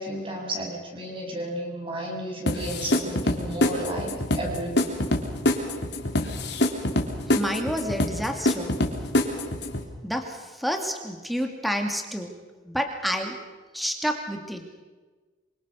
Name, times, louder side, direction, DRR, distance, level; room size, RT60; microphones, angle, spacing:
voice 1, 0.0-4.8, right 1 dB, 25° right, -1 dB, 7.7 m, -32 dB
sound 1, 2.5-9.8, left 1 dB, 60° left, 3.5 m, -25 dB
voice 2, 7.3-8.8 10.0-12.4 12.7-13.4 13.7-14.7, equal, ahead, 4 dB, 2.5 m, -29 dB
26.5 x 25.5 x 6.4 m, 1.3 s
head